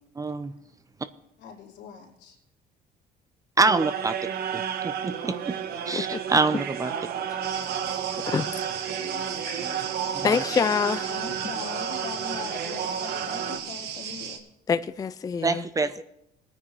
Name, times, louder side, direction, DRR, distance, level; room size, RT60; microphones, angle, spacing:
voice 1, 0.2-0.5 3.6-4.2 4.5-5.6 5.9-6.9 10.1-10.4 15.4-16.0, right 3 dB, 20° right, 0.6 m, -26 dB
voice 2, 1.4-2.4 8.9-9.2 9.6-9.9 11.1-14.4, left 5 dB, 85° left, 3.3 m, -41 dB
sound 1, 3.6-13.6, right 8 dB, 65° right, 0.9 m, -32 dB
sound 2, 7.4-14.4, right 7 dB, 80° right, 1.3 m, -36 dB
voice 3, 10.2-11.1 14.7-15.6, left 6 dB, 20° left, 0.4 m, -25 dB
19.5 x 9.7 x 3.2 m
cardioid pair, 110°, 17 cm